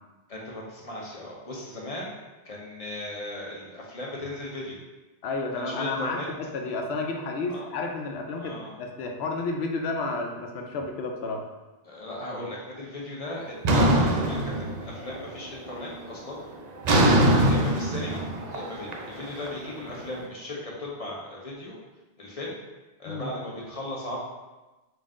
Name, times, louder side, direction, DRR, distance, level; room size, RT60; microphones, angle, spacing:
voice 1, 0.3-2.2 2.4-4.8 5.5-6.3 7.5-7.7 8.4-8.7 11.8-16.4 17.1-18.2 18.5-21.8 22.2-22.6 23.0-24.2, left 1 dB, 35° left, -4 dB, 0.7 m, -37 dB
voice 2, 5.2-11.4 16.9-17.2 23.0-23.3, left 3 dB, 70° left, 3 dB, 0.8 m, -31 dB
sound 1, 13.6-15.2 15.5-16.0 16.8-19.9, right 1 dB, 60° right, 0.4 m, -22 dB
3.9 x 2.5 x 3.6 m, 1.1 s
omnidirectional pair, 1.2 m